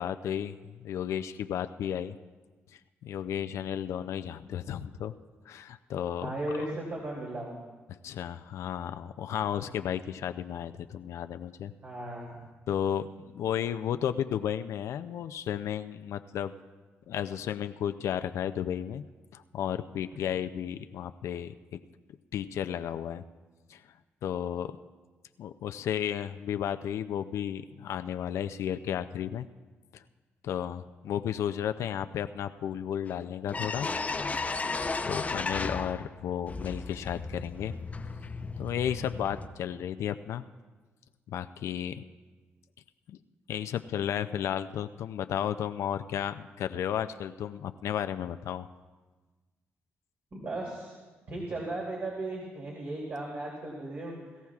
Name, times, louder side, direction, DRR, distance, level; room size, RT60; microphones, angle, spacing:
voice 1, 0.0-2.2 3.0-5.1 5.5-6.7 7.9-11.7 12.7-16.5 17.1-19.0 19.3-21.6 22.3-23.2 23.7-23.8 24.2-24.7 25.4-29.5 29.9-30.0 30.4-33.9 34.5-34.6 35.0-37.7 38.6-40.4 41.3-42.0 43.1-43.2 43.5-48.7, left 9 dB, 80° left, 10 dB, 0.4 m, -33 dB
voice 2, 6.2-7.5 9.3-9.6 11.8-12.4 20.1-20.2 50.3-51.0 51.3-54.1, right 2 dB, 50° right, -3 dB, 2.8 m, -36 dB
sound 1, 33.1-33.2 33.5-36.1 36.5-39.5, left 3 dB, 30° left, 0.6 m, -34 dB
22.0 x 13.5 x 2.4 m, 1.3 s
cardioid pair, 70°, 5 cm